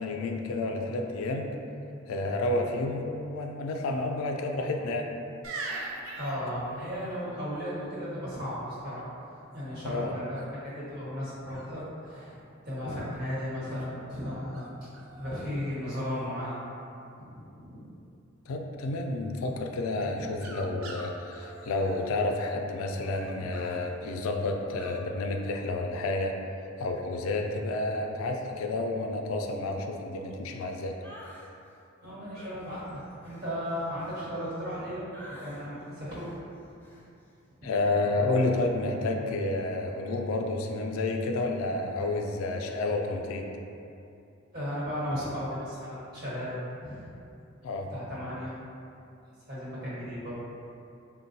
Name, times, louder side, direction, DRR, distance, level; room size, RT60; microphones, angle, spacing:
voice 1, 0.0-1.5 2.1-5.1 9.8-10.1 18.5-26.3 26.8-30.9 37.6-43.5 47.6-47.9, left 2 dB, 90° left, 3 dB, 0.3 m, -30 dB
sound 1, 5.4-7.2 10.4-10.8 11.5-12.3 12.9-13.9 14.5-14.7 14.9-15.4 15.7-16.3 20.0-22.5 23.0-23.9 24.8-25.0, right 2 dB, 85° right, 0.4 m, -43 dB
voice 2, 6.2-9.1 9.5-14.7 15.1-16.6 17.2-17.9 23.4-23.5 32.0-36.3 37.6-37.7 44.5-46.6 46.8-47.1 47.9-48.5 49.5-50.3, equal, 50° right, -9 dB, 1.1 m, -35 dB
sound 2, 31.0-31.5 32.3-34.8 35.1-35.7 36.1-36.4 36.8-37.1, equal, 10° left, 0.3 m, -50 dB
3.7 x 2.1 x 2.7 m, 2.6 s
head